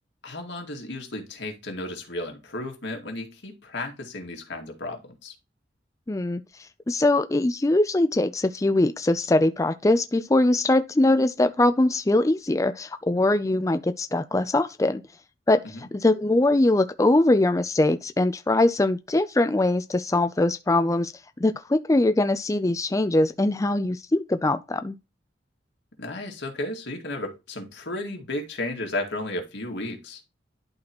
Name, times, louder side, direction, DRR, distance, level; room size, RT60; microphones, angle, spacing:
voice 1, 0.2-5.3 15.7-15.9 26.0-30.2, left 1 dB, 90° left, 2.1 m, -33 dB
voice 2, 6.1-6.4 6.9-15.0 15.5-15.6 15.9-21.1 21.4-25.0, left 2 dB, 20° left, 0.4 m, -22 dB
11.5 x 4.1 x 3.0 m
head